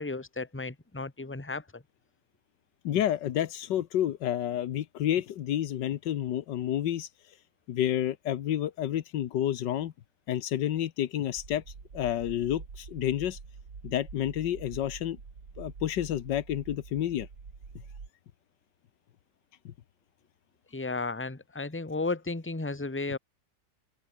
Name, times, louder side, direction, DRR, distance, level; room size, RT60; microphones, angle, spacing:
voice 1, 0.0-1.8 20.7-23.2, left 3 dB, 5° left, 1.4 m, -34 dB
voice 2, 2.8-7.1 7.7-9.9 10.3-11.6 11.9-13.4 13.8-15.2 15.6-17.3 19.6-19.7, left 11 dB, 85° left, 1.6 m, -30 dB
sound 1, 11.3-18.1, right 5 dB, 65° right, 3.2 m, -46 dB
open air
omnidirectional pair, 1.9 m